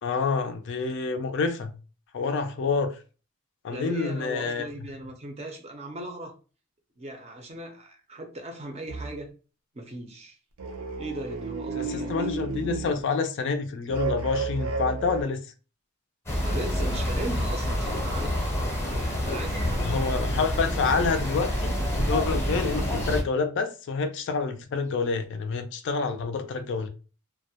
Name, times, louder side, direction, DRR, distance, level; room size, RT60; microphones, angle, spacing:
voice 1, 0.0-1.7 2.1-3.0 3.6-4.7 11.7-15.4 19.8-21.8 22.1-26.9, left 4 dB, 55° left, 0.3 m, -28 dB
voice 2, 3.7-6.3 7.0-9.3 9.7-10.4 11.0-12.4 16.4-18.3 19.2-20.1, right 1 dB, 30° right, 0.5 m, -38 dB
sound 1, 8.9-9.1 10.6-13.0 13.9-15.2, right 4 dB, 90° right, 0.5 m, -32 dB
sound 2, 16.3-23.2, equal, 10° left, 0.6 m, -27 dB
2.3 x 2.0 x 2.7 m
head